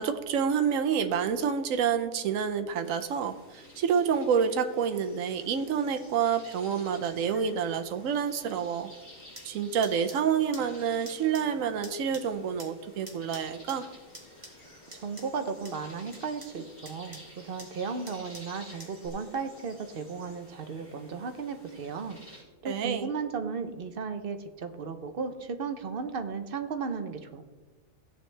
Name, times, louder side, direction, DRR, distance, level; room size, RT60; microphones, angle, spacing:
voice 1, 0.0-8.9 9.4-13.9 22.6-23.1, right 7 dB, 70° right, 7 dB, 1.1 m, -28 dB
sound 1, 2.8-22.4, left 1 dB, 30° left, 2.9 m, -52 dB
sound 2, 9.2-19.1, right 1 dB, 20° right, 1.9 m, -51 dB
voice 2, 14.9-22.2 22.6-27.4, right 5 dB, 50° right, 7 dB, 0.8 m, -35 dB
15.5 x 7.7 x 3.3 m, 1.2 s
omnidirectional pair, 1.5 m